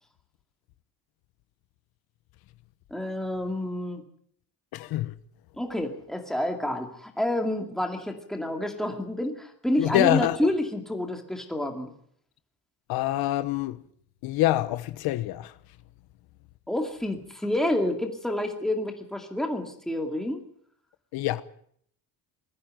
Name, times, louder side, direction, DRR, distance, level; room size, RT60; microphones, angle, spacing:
voice 1, 2.9-4.0 5.6-11.9 16.7-20.4, left 1 dB, ahead, 2.3 m, -29 dB
voice 2, 4.7-5.1 9.8-10.4 12.9-13.8 14.2-15.5 21.1-21.4, left 15 dB, 75° left, 1.1 m, -25 dB
21.0 x 14.5 x 9.0 m
cardioid pair, 175°, 37 cm